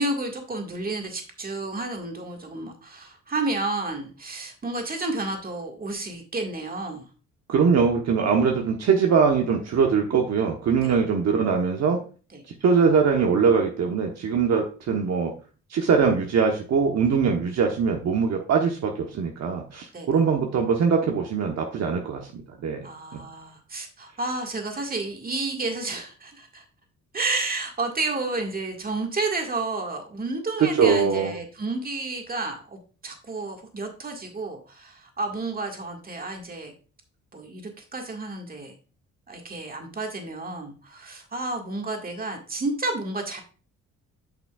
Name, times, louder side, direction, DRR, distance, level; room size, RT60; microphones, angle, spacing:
voice 1, 0.0-7.1 10.8-10.9 12.3-12.4 19.9-20.1 22.8-26.6 27.1-36.7 37.3-38.7 39.3-43.4, right 3 dB, 30° right, 3 dB, 1.8 m, -31 dB
voice 2, 7.5-12.0 12.6-15.3 15.7-22.8 30.6-31.4, right 6 dB, 60° right, 2 dB, 1.1 m, -22 dB
9.0 x 6.0 x 2.3 m, 0.37 s
cardioid pair, 90°, 30 cm